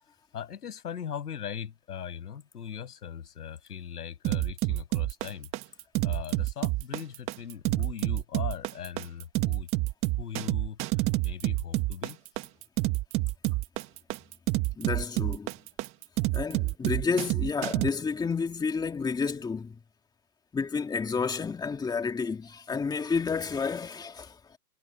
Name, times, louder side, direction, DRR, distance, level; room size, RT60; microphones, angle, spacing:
voice 1, 0.3-5.5 6.0-9.7 10.2-10.9 11.2-12.2, left 8 dB, 90° left, 8.0 m, -39 dB
sound 1, 4.2-17.9, right 19 dB, 30° right, 1.7 m, -28 dB
voice 2, 14.8-15.5 16.3-19.8 20.5-24.6, left 5 dB, 10° left, 2.6 m, -30 dB
hypercardioid pair, 145°, 45 cm